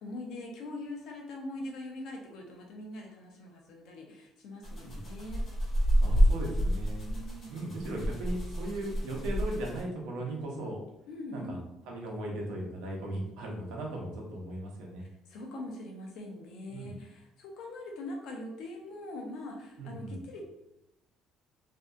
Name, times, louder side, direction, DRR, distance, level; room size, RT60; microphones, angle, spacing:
voice 1, 0.0-5.4 7.1-7.8 11.1-11.7 15.0-20.4, left 1 dB, 70° left, 1 dB, 0.7 m, -42 dB
sound 1, 4.6-9.8, equal, 40° left, 1.3 m, -29 dB
voice 2, 6.0-7.1 7.5-10.8 11.3-11.6 11.9-15.0 16.7-16.9 19.8-20.2, right 1 dB, 85° right, 0 dB, 0.7 m, -37 dB
2.6 x 2.3 x 2.5 m, 0.87 s
cardioid pair, 120°, 0 cm